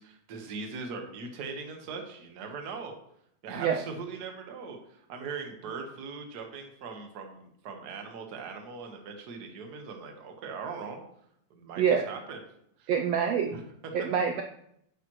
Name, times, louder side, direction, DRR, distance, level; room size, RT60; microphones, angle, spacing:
voice 1, 0.0-3.0 3.4-11.0 11.5-12.4 12.8-12.9 13.5-13.9, right 5 dB, 55° right, 3 dB, 1.1 m, -40 dB
voice 2, 12.9-13.5 13.9-14.4, right 7 dB, 85° right, 4 dB, 1.4 m, -25 dB
9.2 x 8.5 x 3.1 m, 0.73 s
omnidirectional pair, 3.6 m